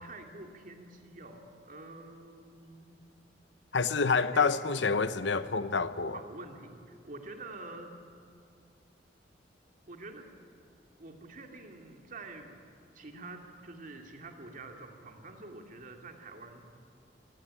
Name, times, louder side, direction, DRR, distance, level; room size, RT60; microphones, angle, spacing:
voice 1, 0.0-3.1 4.3-4.5 6.1-8.0 9.9-10.3 11.0-12.7 12.9-16.7, right 2 dB, 50° right, 3 dB, 2.6 m, -47 dB
voice 2, 3.7-6.2, left 4 dB, 75° left, 13 dB, 0.9 m, -28 dB
23.0 x 17.5 x 10.0 m, 2.4 s
head